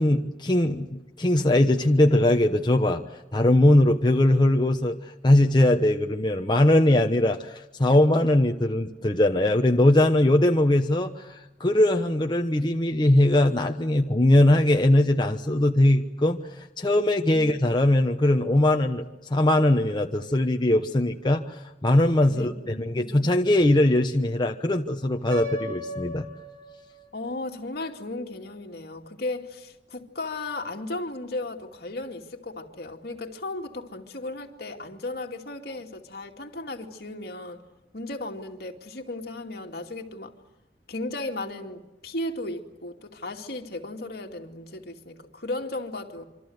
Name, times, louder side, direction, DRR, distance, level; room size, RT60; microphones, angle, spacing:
voice 1, 0.0-3.0 3.3-5.0 5.2-19.0 19.3-26.3, left 1 dB, 25° left, 1.0 m, -21 dB
voice 2, 22.3-23.3 27.1-37.6 37.9-40.3 40.9-46.3, left 2 dB, 60° left, 2.5 m, -35 dB
Piano, 25.3-27.3, equal, 60° right, 7.8 m, -36 dB
26.5 x 26.0 x 8.0 m
head